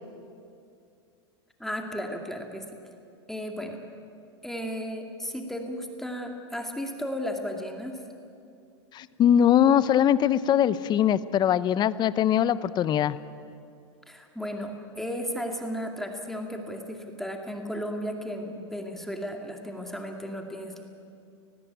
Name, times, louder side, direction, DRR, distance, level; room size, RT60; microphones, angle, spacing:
voice 1, 1.6-2.8 3.3-3.8 4.4-8.0 14.1-20.8, equal, ahead, 3 dB, 2.3 m, -34 dB
voice 2, 8.9-13.2, left 10 dB, 30° left, 17 dB, 0.7 m, -22 dB
19.0 x 15.5 x 9.3 m, 2.5 s
hypercardioid pair, 110°, 15 cm